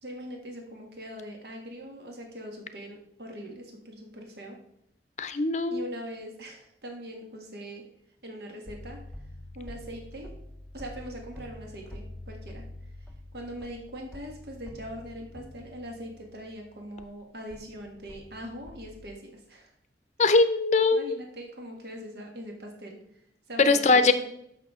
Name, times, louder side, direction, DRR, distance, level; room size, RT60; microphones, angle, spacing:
voice 1, 0.0-4.6 5.7-7.8 8.2-9.0 9.5-10.3 10.7-12.7 13.3-19.7 20.9-23.0 23.5-24.1, equal, 65° right, 1 dB, 1.6 m, -41 dB
voice 2, 5.2-5.8 20.2-21.2 23.6-24.1, left 3 dB, 40° left, 11 dB, 0.6 m, -21 dB
sound 1, 8.7-17.1 17.5-19.1, left 1 dB, ahead, 0.6 m, -46 dB
13.0 x 5.9 x 3.6 m, 0.75 s
head